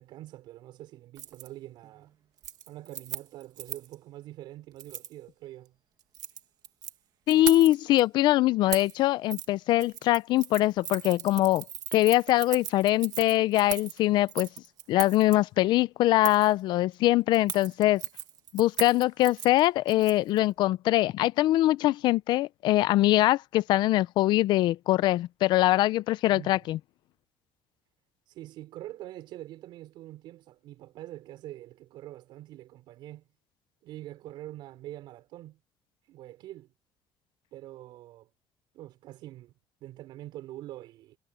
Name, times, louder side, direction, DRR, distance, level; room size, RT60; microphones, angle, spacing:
voice 1, 0.0-2.1 2.7-5.7 26.3-26.7 28.3-33.3 33.8-35.6 36.0-36.7 37.5-38.3 38.7-39.5 39.8-41.2, right 15 dB, 70° right, 4.8 m, -45 dB
Keys jangling, 1.1-1.5 1.8-2.1 2.4-3.9 4.8-5.1 6.0-6.9 7.3-8.0 8.7-9.0 9.3-9.5 9.8-15.4 16.2-16.5 17.3-20.4 20.7-20.8, right 10 dB, 50° right, 1.5 m, -38 dB
voice 2, 7.3-11.7 11.9-14.5 14.9-18.0 18.5-26.8, left 16 dB, 65° left, 0.4 m, -23 dB
cardioid pair, 155°, 8 cm